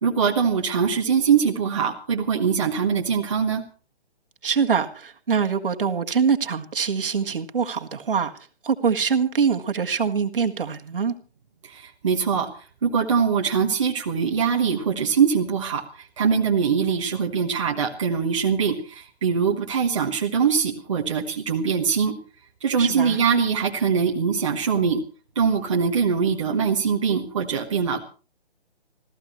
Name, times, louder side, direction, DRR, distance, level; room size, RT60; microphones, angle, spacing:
voice 1, 0.0-3.6 11.7-12.5 12.8-15.8 16.2-22.1 22.6-25.0 25.3-28.0, right 6 dB, 30° right, 1.3 m, -22 dB
voice 2, 4.4-8.3 8.6-11.1 22.8-23.2, right 6 dB, 55° right, 1.8 m, -24 dB
27.5 x 14.5 x 3.1 m
hypercardioid pair, 175°, 32 cm